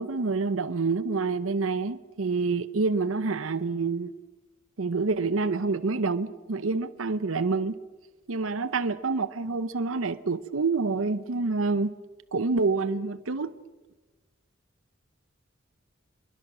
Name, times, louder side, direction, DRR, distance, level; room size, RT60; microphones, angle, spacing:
voice 1, 0.0-4.1 4.8-7.7 8.3-11.9 12.3-13.5, right 4 dB, 80° right, 0.8 m, -27 dB
27.0 x 23.0 x 6.1 m
head